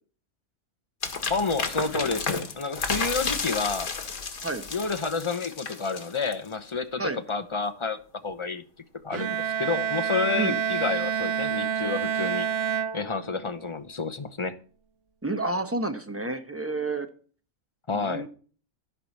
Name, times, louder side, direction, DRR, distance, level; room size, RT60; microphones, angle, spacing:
sound 1, 1.0-6.5, left 5 dB, 90° left, 2.1 m, -32 dB
voice 1, 1.3-3.9 4.7-8.0 8.2-8.6 9.0-12.5 12.9-14.5 17.9-18.2, left 4 dB, 25° left, 9 dB, 0.8 m, -29 dB
Bowed string instrument, 9.1-13.6, right 8 dB, 60° right, 1.0 m, -28 dB
voice 2, 15.2-17.1 17.9-18.3, right 2 dB, 10° right, 7 dB, 1.0 m, -30 dB
14.5 x 4.9 x 7.2 m, 0.42 s
omnidirectional pair, 1.5 m